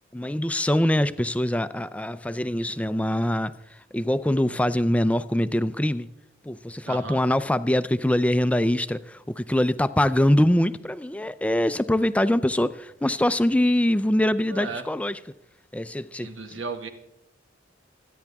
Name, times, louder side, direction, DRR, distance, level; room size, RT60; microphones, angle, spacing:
voice 1, 0.1-6.1 6.4-15.2 15.7-16.6, left 1 dB, 5° left, 0.5 m, -23 dB
voice 2, 6.9-7.2 14.4-14.8 16.2-16.9, right 4 dB, 75° right, 1.9 m, -34 dB
26.5 x 10.0 x 3.5 m
head